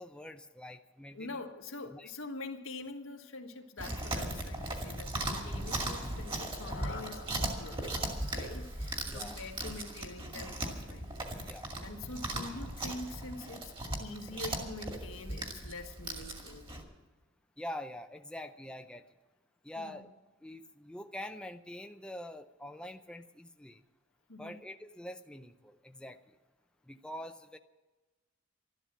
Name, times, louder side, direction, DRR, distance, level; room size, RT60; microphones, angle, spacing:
voice 1, 0.0-1.4 1.9-2.1 9.1-9.4 11.4-11.7 17.6-19.0 19.6-20.1 20.4-23.8 24.4-26.2 26.9-27.6, left 1 dB, 5° left, 6 dB, 0.5 m, -45 dB
voice 2, 1.1-7.8 8.2-11.1 11.4-13.7 14.0-16.6 19.8-20.0 24.3-24.6, left 2 dB, 85° left, 4 dB, 1.6 m, -45 dB
Chewing mastication, 3.8-16.8, right 1 dB, 25° right, 2.1 m, -38 dB
sound 1, 6.1-10.1, left 3 dB, 65° left, 1.5 m, -50 dB
12.5 x 12.0 x 7.5 m, 1.2 s
head